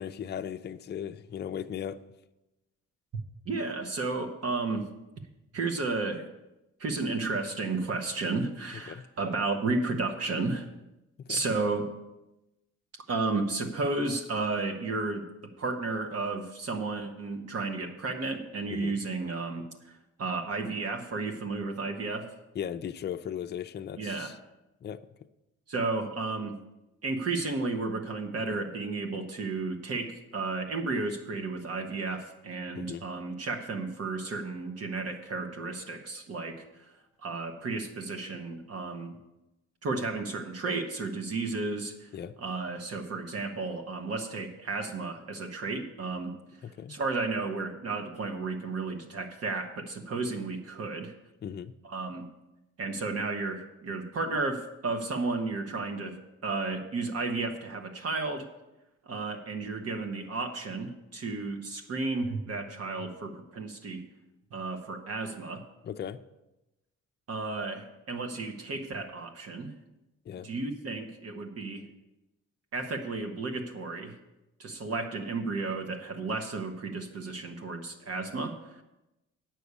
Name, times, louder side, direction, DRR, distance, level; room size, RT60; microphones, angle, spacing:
voice 1, 0.0-2.0 8.9-9.0 11.2-11.4 18.7-19.0 22.5-24.4 24.8-25.0 32.8-33.0 42.1-42.3 46.6-47.0 51.4-51.7 65.8-66.2 70.3-70.5, left 9 dB, 35° left, 0.5 m, -37 dB
voice 2, 3.5-4.9 5.5-6.3 6.8-10.7 11.3-11.9 13.1-15.3 15.6-22.3 24.0-24.3 25.7-26.6 27.0-36.9 37.2-39.1 39.8-42.1 42.4-46.3 46.9-51.1 51.8-52.3 52.8-58.5 59.1-64.0 64.5-65.6 67.3-69.7 70.4-71.8 72.7-74.1 74.6-78.8, right 3 dB, 55° right, 1.2 m, -33 dB
8.3 x 6.1 x 8.2 m
cardioid pair, 90°, 30 cm